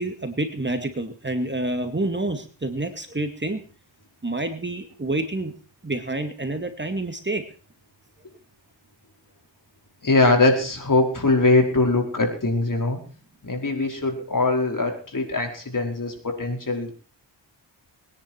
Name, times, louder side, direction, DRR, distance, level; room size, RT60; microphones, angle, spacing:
voice 1, 0.0-3.6 4.2-5.5 5.8-7.4, right 2 dB, 25° right, 6 dB, 2.2 m, -28 dB
voice 2, 10.0-13.0 13.4-16.9, left 2 dB, 45° left, 2 dB, 4.9 m, -22 dB
22.5 x 10.5 x 4.5 m, 0.39 s
cardioid pair, 55°, 45 cm